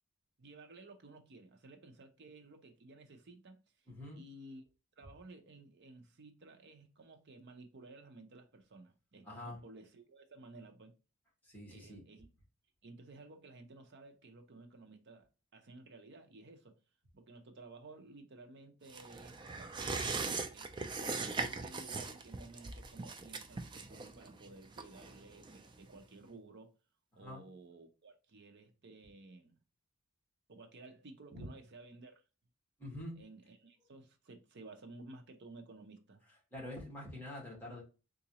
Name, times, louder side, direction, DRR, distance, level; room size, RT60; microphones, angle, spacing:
voice 1, 0.4-3.6 4.1-4.6 5.0-11.0 11.7-12.3 12.8-16.7 17.1-20.0 20.5-26.8 27.1-29.5 30.5-32.2 33.2-36.2, right 2 dB, 55° right, 0.7 m, -55 dB
voice 2, 3.9-4.2 9.2-9.6 11.4-12.0 27.1-27.4 31.3-31.5 32.8-33.2 36.5-37.8, left 1 dB, 10° left, 1.6 m, -46 dB
sound 1, 18.9-26.0 26.3-26.4, right 4 dB, 20° right, 0.4 m, -40 dB
3.9 x 2.5 x 2.8 m
head